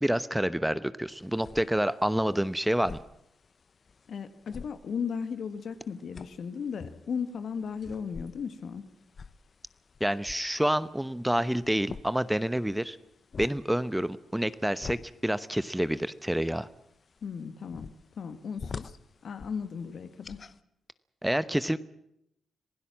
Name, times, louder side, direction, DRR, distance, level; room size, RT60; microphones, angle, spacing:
voice 1, 0.0-3.0 10.0-13.0 13.4-16.7 21.2-21.8, right 1 dB, 5° right, 15 dB, 0.9 m, -28 dB
sound 1, 1.1-20.6, left 5 dB, 50° left, 0.9 m, -48 dB
voice 2, 4.1-8.8 17.2-17.9 18.2-18.9 19.2-20.4, left 6 dB, 65° left, 9 dB, 1.9 m, -36 dB
26.5 x 16.5 x 7.4 m, 0.78 s
supercardioid pair, 55°, 0 cm